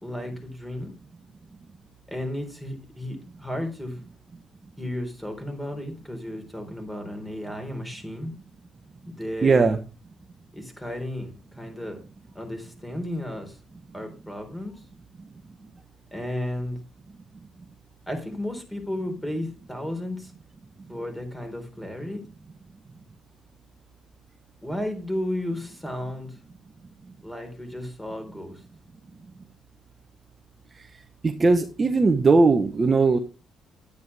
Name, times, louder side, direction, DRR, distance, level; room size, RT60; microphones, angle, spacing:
voice 1, 0.0-0.9 2.1-4.0 4.8-8.3 9.1-9.7 10.5-12.0 12.3-13.5 13.9-14.8 16.1-16.8 18.1-20.3 20.9-22.2 24.6-26.4 27.2-28.6, left 1 dB, 10° left, 4.0 m, -33 dB
voice 2, 9.4-9.8 31.2-33.2, right 3 dB, 35° right, 1.2 m, -19 dB
10.5 x 9.3 x 3.4 m
cardioid pair, 90°, 0 cm